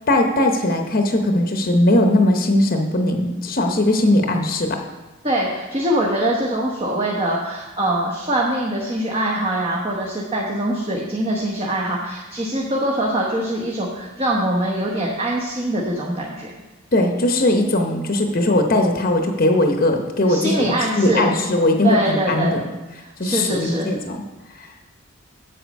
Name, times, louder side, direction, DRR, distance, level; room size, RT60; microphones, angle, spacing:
voice 1, 0.1-4.8 16.9-22.6 23.2-24.2 24.5-24.7, left 1 dB, 45° left, 3 dB, 0.8 m, -19 dB
voice 2, 5.2-16.5 20.2-21.3 21.8-22.6 23.2-23.9, right 1 dB, 25° right, -2 dB, 1.0 m, -23 dB
8.1 x 7.5 x 5.2 m, 1.2 s
head